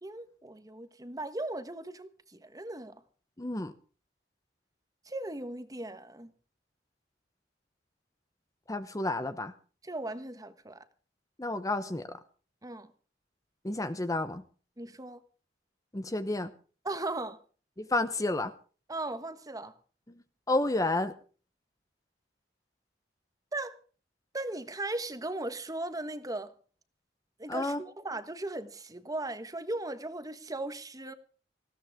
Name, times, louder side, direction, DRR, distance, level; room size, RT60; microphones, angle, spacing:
voice 1, 0.0-3.0 5.1-6.3 9.8-10.8 12.6-12.9 14.8-15.2 16.8-17.4 18.9-19.7 23.5-23.8 24.3-26.5 27.4-31.1, right 2 dB, 20° right, 1.3 m, -37 dB
voice 2, 3.4-3.7 8.7-9.5 11.4-12.0 13.6-14.4 15.9-16.5 17.8-18.5 20.5-21.1 27.5-27.8, left 2 dB, 20° left, 0.8 m, -30 dB
19.5 x 16.0 x 3.6 m
head